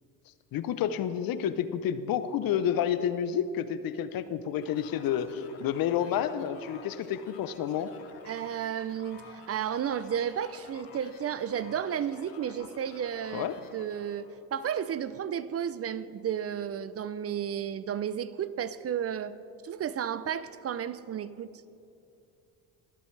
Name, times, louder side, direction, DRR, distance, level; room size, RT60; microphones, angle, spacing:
voice 1, 0.5-7.9 13.3-13.6, left 9 dB, 60° left, 13 dB, 0.7 m, -30 dB
sound 1, 4.6-14.3, left 6 dB, 80° left, 1.4 m, -52 dB
voice 2, 8.3-13.5 13.7-14.3 14.5-19.4 19.6-21.7, right 9 dB, 35° right, 15 dB, 0.5 m, -33 dB
23.5 x 8.2 x 3.3 m, 2.6 s
supercardioid pair, 75°, 40 cm